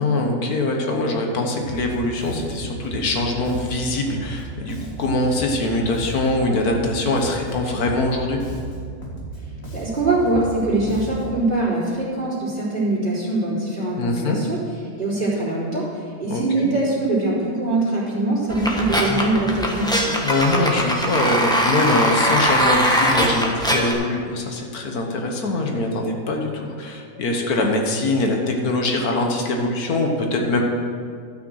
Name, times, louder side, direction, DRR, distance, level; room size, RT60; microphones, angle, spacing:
voice 1, 0.0-8.4 14.0-14.4 16.3-16.7 20.2-30.6, left 2 dB, 80° left, 2 dB, 1.6 m, -23 dB
Bass guitar, 1.6-11.5, right 1 dB, 60° left, 2.3 m, -34 dB
voice 2, 9.7-14.6 15.0-15.8 16.2-20.2, right 2 dB, 35° right, -9 dB, 3.6 m, -22 dB
sound 1, 18.5-23.9, equal, 5° left, 1.1 m, -21 dB
12.5 x 6.2 x 6.4 m, 2.1 s
omnidirectional pair, 1.6 m